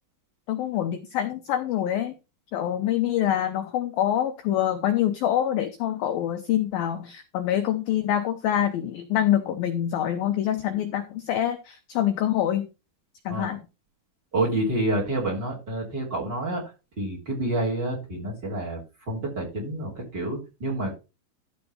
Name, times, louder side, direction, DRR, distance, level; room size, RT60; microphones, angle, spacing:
voice 1, 0.5-2.1 2.5-12.7 13.3-13.6, left 11 dB, 80° left, 7 dB, 2.1 m, -25 dB
voice 2, 14.3-16.7 17.0-21.0, right 1 dB, 25° right, 1 dB, 3.0 m, -28 dB
13.5 x 4.5 x 5.4 m, 0.29 s
omnidirectional pair, 5.4 m